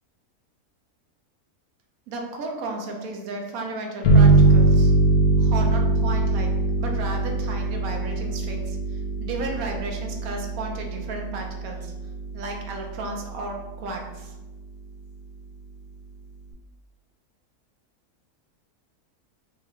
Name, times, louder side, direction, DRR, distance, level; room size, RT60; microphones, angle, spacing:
voice 1, 2.1-4.9 5.4-11.9 12.3-14.3, right 2 dB, 70° right, 2 dB, 1.1 m, -34 dB
sound 1, 4.0-13.3, right 2 dB, 70° left, 1.1 m, -22 dB
4.5 x 3.0 x 2.5 m, 1.1 s
omnidirectional pair, 1.6 m